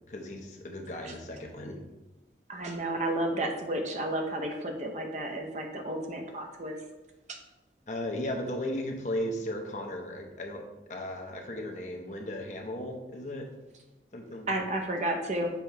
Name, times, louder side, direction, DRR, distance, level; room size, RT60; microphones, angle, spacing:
voice 1, 0.1-1.8 7.9-10.6 10.9-13.5 14.1-14.6, left 1 dB, 40° left, 2 dB, 0.8 m, -36 dB
voice 2, 2.5-6.8 14.5-15.5, right 1 dB, 40° right, 3 dB, 0.7 m, -32 dB
6.9 x 3.0 x 4.5 m, 1.0 s
head